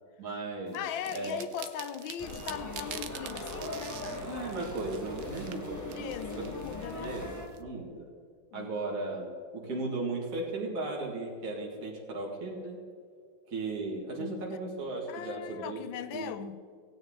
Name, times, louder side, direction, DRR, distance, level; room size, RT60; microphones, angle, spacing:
voice 1, 0.2-0.8 1.1-1.4 4.2-6.1 6.4-6.5 7.0-7.3 7.6-8.1 8.5-12.8 13.5-15.8 16.1-16.3, right 2 dB, 45° right, 2.4 m, -36 dB
voice 2, 0.7-4.2 5.9-7.1 8.5-8.7 14.1-14.4 15.1-16.6, left 9 dB, 90° left, 1.5 m, -39 dB
sound 1, 0.7-7.6, right 10 dB, 80° right, 1.4 m, -46 dB
sound 2, 2.2-7.5, left 2 dB, 10° left, 1.3 m, -40 dB
17.0 x 9.5 x 3.8 m
omnidirectional pair, 2.1 m